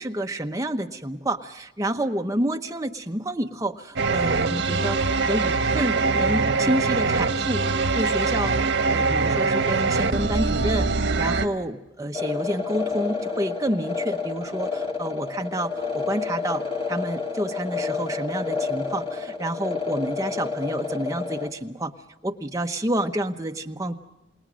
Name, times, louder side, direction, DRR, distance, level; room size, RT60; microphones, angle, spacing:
voice 1, 0.0-8.6 8.9-10.9 11.2-21.9 22.2-24.0, right 1 dB, 15° right, 4 dB, 1.0 m, -29 dB
sound 1, 4.0-11.5, right 4 dB, 80° right, 1.3 m, -23 dB
sound 2, 12.1-21.5, left 5 dB, 30° left, 2.2 m, -29 dB
29.0 x 19.0 x 6.3 m, 0.96 s
head